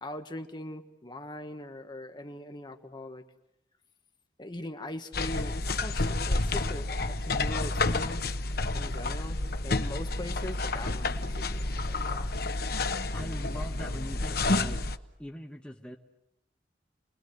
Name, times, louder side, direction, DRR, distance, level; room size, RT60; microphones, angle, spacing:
voice 1, 0.0-3.2 4.4-8.4 8.7-12.3, left 1 dB, 25° left, 6 dB, 1.5 m, -41 dB
sound 1, 5.1-15.0, left 2 dB, 60° left, 1.0 m, -30 dB
sound 2, 5.9-6.6 7.5-8.1 10.5-12.1, right 1 dB, 10° right, 5.3 m, -45 dB
voice 2, 13.1-14.8 15.2-16.0, equal, 5° left, 1 dB, 1.3 m, -41 dB
29.0 x 21.0 x 8.0 m, 0.81 s
head